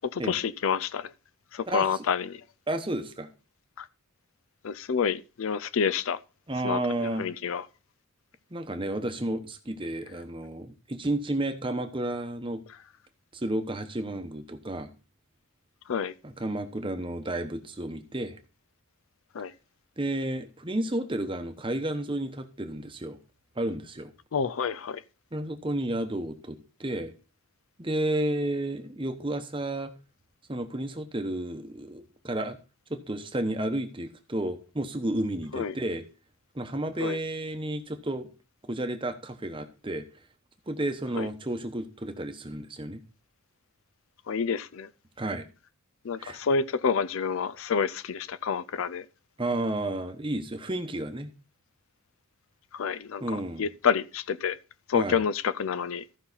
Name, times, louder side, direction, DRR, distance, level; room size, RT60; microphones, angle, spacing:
voice 1, 0.1-1.1 1.5-2.4 3.8-3.9 4.6-6.2 6.6-7.6 15.9-16.1 19.3-19.5 24.3-25.0 35.5-35.7 37.0-37.2 41.2-41.3 44.3-44.9 46.0-49.0 52.7-53.2 53.6-54.6 54.9-56.0, left 6 dB, 65° left, 0.4 m, -28 dB
voice 2, 1.7-2.0 2.7-3.3 6.5-7.3 8.5-12.6 13.3-14.9 16.2-18.4 20.0-23.2 23.6-24.1 25.3-27.1 27.8-29.9 30.5-32.6 32.9-36.0 36.5-38.3 38.7-40.0 40.7-43.0 45.2-45.5 46.2-46.4 49.4-51.3 53.2-53.6 54.9-55.2, right 1 dB, 25° right, 0.9 m, -32 dB
14.0 x 5.6 x 4.0 m
head